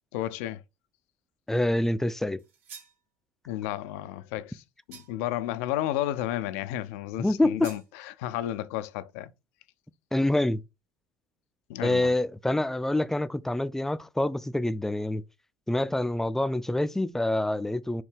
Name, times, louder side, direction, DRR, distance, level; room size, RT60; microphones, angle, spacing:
voice 1, 0.1-0.6 3.5-4.6 4.9-9.3 11.7-12.1, left 13 dB, 70° left, 0.4 m, -32 dB
voice 2, 1.5-2.4 7.2-7.7 10.1-10.6 11.8-15.2 15.7-18.0, left 1 dB, 5° left, 0.3 m, -26 dB
sound 1, 2.4-3.0 4.9-5.4 7.6-7.9, right 7 dB, 80° right, 1.3 m, -48 dB
4.5 x 2.8 x 3.3 m
hypercardioid pair, 70°, 8 cm